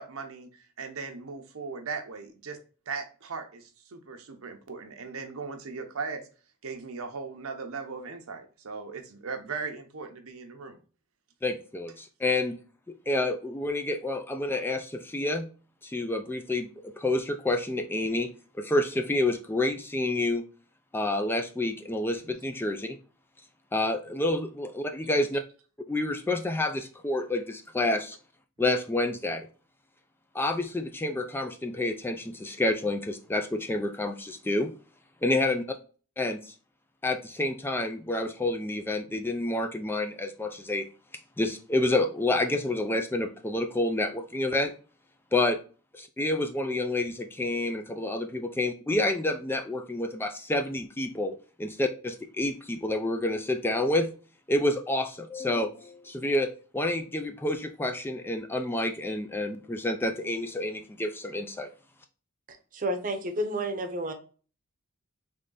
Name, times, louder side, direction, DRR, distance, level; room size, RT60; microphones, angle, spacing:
voice 1, 0.0-2.6 2.9-6.3 6.6-10.8, right 4 dB, 80° right, 5 dB, 0.8 m, -38 dB
voice 2, 11.4-12.6 12.9-15.5 15.8-18.3 18.5-20.4 20.9-23.0 23.7-25.4 25.9-28.2 28.6-29.5 30.3-34.7 35.2-35.6 36.2-36.5 37.0-40.9 41.4-44.7 45.3-45.6 45.9-54.1 54.5-61.7, left 2 dB, 10° left, 5 dB, 0.3 m, -29 dB
voice 3, 62.7-64.1, right 1 dB, 40° right, 6 dB, 0.8 m, -30 dB
3.6 x 3.2 x 3.8 m, 0.38 s
head